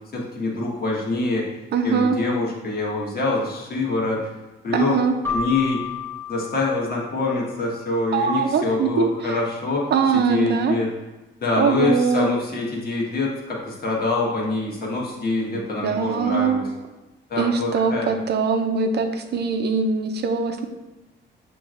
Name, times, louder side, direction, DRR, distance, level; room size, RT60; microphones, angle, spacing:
voice 1, 0.1-1.4 1.8-4.3 4.6-5.0 5.3-5.8 6.3-9.9 10.1-10.9 11.4-16.7 17.3-18.1, left 3 dB, 50° left, -3 dB, 1.4 m, -25 dB
voice 2, 1.7-2.2 4.7-5.2 8.1-9.4 9.9-10.8 11.6-12.3 15.8-16.6 17.4-20.7, right 5 dB, 55° right, 6 dB, 0.6 m, -22 dB
Keyboard (musical), 5.2-7.8, left 5 dB, 10° left, 1.0 m, -32 dB
6.9 x 3.0 x 2.5 m, 1.1 s
cardioid pair, 90°, 20 cm